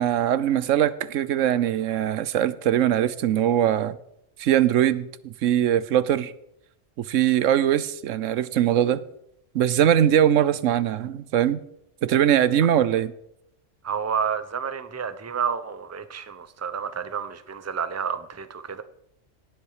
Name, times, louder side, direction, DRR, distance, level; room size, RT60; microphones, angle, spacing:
voice 1, 0.0-4.0 4.4-6.3 7.1-9.0 9.5-11.6 12.0-13.1, right 10 dB, 85° right, 1.1 m, -21 dB
voice 2, 13.8-18.8, right 7 dB, 15° right, 0.6 m, -30 dB
17.5 x 9.9 x 4.9 m
omnidirectional pair, 1.3 m